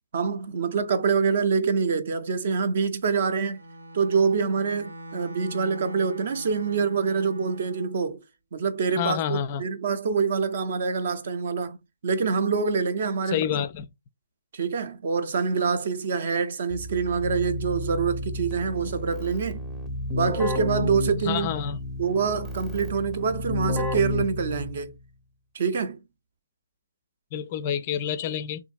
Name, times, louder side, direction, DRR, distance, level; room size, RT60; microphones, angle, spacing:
voice 1, 0.1-3.6 3.9-8.2 8.5-11.8 12.0-13.4 14.5-19.6 20.1-21.5 22.0-24.9 25.5-26.0, right 5 dB, 50° right, 0.6 m, -26 dB
Bowed string instrument, 3.5-8.0, equal, 85° right, 0.9 m, -42 dB
voice 2, 9.0-9.6 13.3-13.9 21.2-21.8 27.3-28.6, left 9 dB, 30° left, 0.4 m, -28 dB
Keyboard (musical), 16.7-25.0, left 1 dB, 10° right, 0.6 m, -31 dB
3.8 x 2.7 x 2.5 m
figure-of-eight pair, 140°, 0 cm